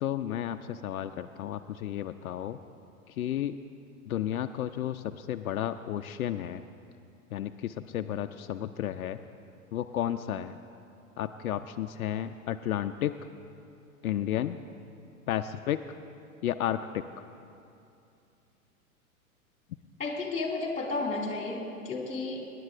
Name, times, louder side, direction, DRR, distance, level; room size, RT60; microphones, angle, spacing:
voice 1, 0.0-2.6 3.1-3.6 4.1-6.6 7.3-9.2 9.7-10.6 11.2-13.2 14.0-14.6 15.3-15.8 16.4-17.0, left 11 dB, 75° left, 8 dB, 0.6 m, -32 dB
voice 2, 20.0-22.5, left 3 dB, 15° left, 0 dB, 2.4 m, -32 dB
25.5 x 10.5 x 2.5 m, 2.6 s
hypercardioid pair, 105°, 43 cm